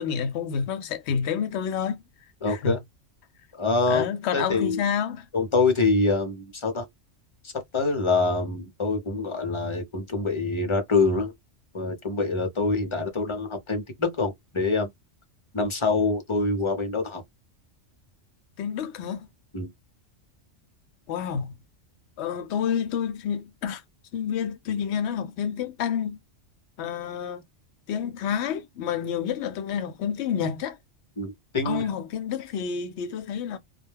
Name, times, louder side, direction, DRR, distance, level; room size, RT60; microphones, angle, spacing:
voice 1, 0.0-2.0 2.5-2.7 3.9-5.3 18.6-19.3 21.1-21.5 22.2-23.8 24.1-26.2 26.8-27.4 27.9-30.8 31.6-33.6, left 7 dB, 70° left, 0.8 m, -29 dB
voice 2, 2.4-2.8 3.5-4.8 5.3-6.9 7.4-11.3 11.7-14.9 15.5-17.2 19.5-19.7 31.2-31.9, left 3 dB, 30° left, 0.6 m, -25 dB
2.2 x 2.1 x 3.2 m
omnidirectional pair, 1.3 m